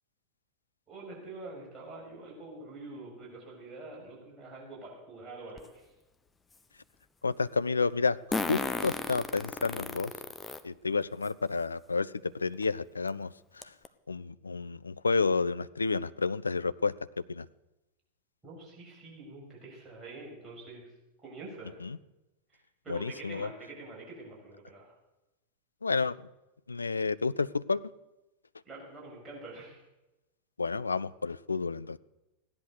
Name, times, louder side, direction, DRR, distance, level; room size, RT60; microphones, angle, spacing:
voice 1, 0.9-5.8 18.4-20.9 21.2-21.8 22.8-24.9 28.7-29.8, right 2 dB, 20° right, -4 dB, 6.9 m, -45 dB
Fart, 5.6-5.7 8.3-10.6 11.2-11.3 12.6-12.7 13.1-13.2 13.6-13.9, left 3 dB, 15° left, 0.9 m, -34 dB
voice 2, 7.2-10.1 10.6-13.7 14.1-17.0 17.3-17.5 21.8-22.0 22.9-23.5 25.8-26.2 26.7-27.8 30.6-32.0, left 4 dB, 75° left, 16 dB, 0.4 m, -30 dB
16.5 x 10.5 x 6.7 m, 0.98 s
figure-of-eight pair, 90°, 0 cm